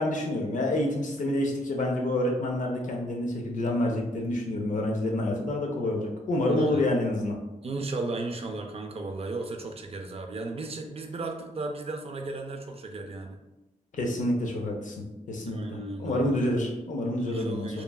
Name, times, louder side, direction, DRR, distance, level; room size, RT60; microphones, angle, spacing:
voice 1, 0.0-7.4 13.9-15.6 16.0-17.8, left 1 dB, 70° left, 0 dB, 0.6 m, -28 dB
voice 2, 6.5-6.9 7.6-13.4 15.4-16.3 17.2-17.8, right 3 dB, 45° right, 4 dB, 0.4 m, -35 dB
3.0 x 2.3 x 2.2 m, 1.0 s
wide cardioid pair, 95°, 14 cm